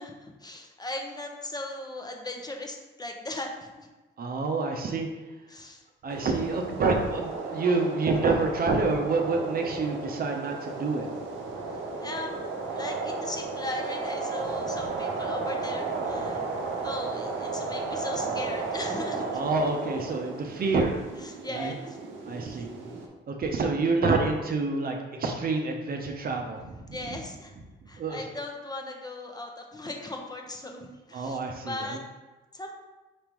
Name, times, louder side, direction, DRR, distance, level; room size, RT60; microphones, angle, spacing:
voice 1, 0.0-3.9 5.5-5.8 12.0-16.4 16.8-19.4 21.2-22.0 22.5-22.6 26.9-27.5 27.9-32.0 32.5-32.7, left 2 dB, 20° left, 2 dB, 0.7 m, -38 dB
voice 2, 4.2-5.1 6.0-11.1 19.1-21.0 21.5-21.7 22.3-22.7 23.3-26.6 26.9-27.0 28.0-28.2 31.1-32.0, right 3 dB, 50° right, 3 dB, 0.7 m, -27 dB
sound 1, 6.1-23.1, right 3 dB, 80° right, 0.8 m, -34 dB
4.9 x 3.6 x 3.0 m, 1.1 s
cardioid pair, 90°, 20 cm